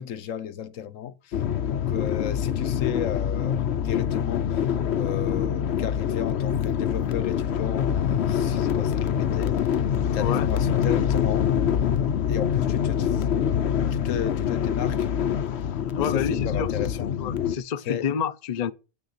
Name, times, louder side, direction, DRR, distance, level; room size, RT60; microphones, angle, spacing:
voice 1, 0.0-9.9 10.1-11.5 12.3-13.3 13.9-15.1 15.6-17.1 17.9-18.1, left 9 dB, 80° left, 1.2 m, -34 dB
sound 1, 1.3-17.6, left 9 dB, 60° left, 0.9 m, -25 dB
voice 2, 10.2-10.5 13.1-13.2 15.9-18.7, left 7 dB, 45° left, 0.6 m, -29 dB
8.8 x 6.6 x 8.6 m
omnidirectional pair, 1.3 m